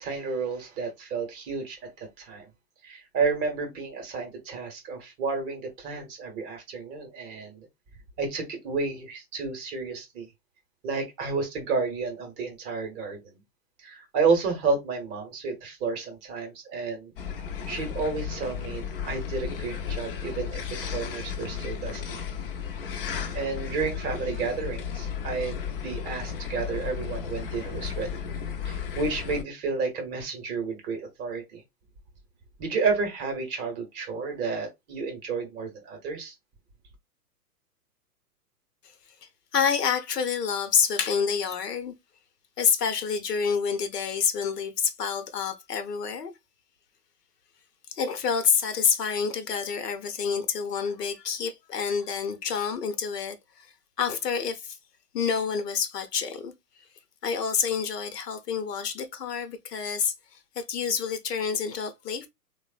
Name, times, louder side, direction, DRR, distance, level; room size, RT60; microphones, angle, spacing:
voice 1, 0.0-2.5 2.8-7.7 8.2-10.3 10.8-13.4 13.8-17.1 17.7-22.2 23.3-28.2 28.6-31.6 32.6-36.3, right 4 dB, 25° right, 0.7 m, -31 dB
sound 1, 17.2-29.4, left 7 dB, 40° left, 0.4 m, -34 dB
voice 2, 39.5-41.9 42.6-46.3 47.9-53.7 54.0-54.8 55.1-56.5 57.2-60.1 60.6-62.3, left 6 dB, 75° left, 0.8 m, -28 dB
3.1 x 2.0 x 2.3 m
hypercardioid pair, 115°, 48 cm